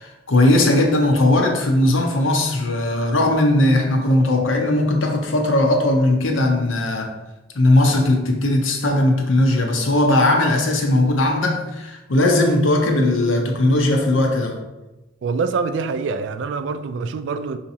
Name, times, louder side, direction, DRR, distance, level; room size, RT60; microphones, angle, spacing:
voice 1, 0.0-7.1 7.5-14.6, left 1 dB, 90° left, 2 dB, 0.7 m, -18 dB
voice 2, 15.2-17.6, right 4 dB, 70° right, 10 dB, 0.3 m, -25 dB
5.8 x 2.8 x 2.7 m, 1.0 s
head